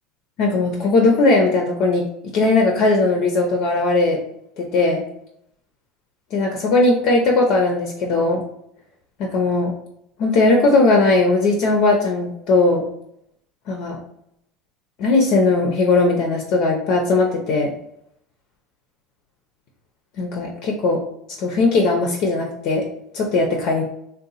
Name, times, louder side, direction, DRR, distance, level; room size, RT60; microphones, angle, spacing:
voice 1, 0.4-4.2 4.6-5.0 6.3-8.4 9.2-9.7 10.2-12.8 13.7-14.0 15.0-17.7 20.2-21.0 21.4-22.8 23.1-23.8, left 3 dB, 60° left, 1 dB, 0.6 m, -18 dB
2.6 x 2.2 x 4.0 m, 0.73 s
supercardioid pair, 105°, 0 cm